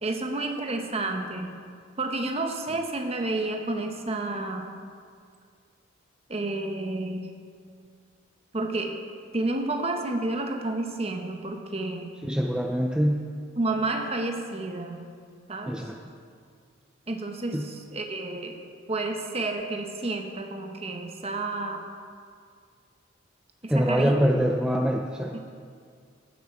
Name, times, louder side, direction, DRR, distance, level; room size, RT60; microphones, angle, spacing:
voice 1, 0.0-1.7 2.0-4.7 6.3-7.3 8.5-9.0 9.3-12.1 13.6-15.0 15.5-15.8 17.1-18.6 18.9-21.9 23.6-24.2 25.3-25.4, right 2 dB, 30° right, 4 dB, 0.9 m, -30 dB
voice 2, 12.2-13.3 15.7-16.0 17.5-17.6 23.7-25.4, equal, 5° right, 2 dB, 0.4 m, -24 dB
15.5 x 7.3 x 4.4 m, 2.2 s
head